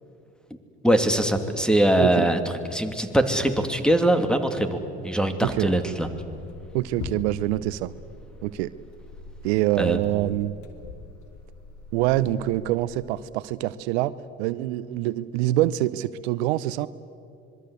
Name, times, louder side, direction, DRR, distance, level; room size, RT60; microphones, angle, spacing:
voice 1, 0.8-2.4 2.7-4.8 5.0-6.1 9.8-10.0, right 1 dB, ahead, 7 dB, 2.8 m, -22 dB
sound 1, 6.0-13.2, left 3 dB, 60° left, 2.9 m, -42 dB
voice 2, 6.7-7.9 8.4-8.7 9.4-10.5 11.9-14.1 14.4-16.9, right 15 dB, 75° right, 16 dB, 0.7 m, -25 dB
26.0 x 22.0 x 8.3 m, 2.6 s
hypercardioid pair, 65°, 33 cm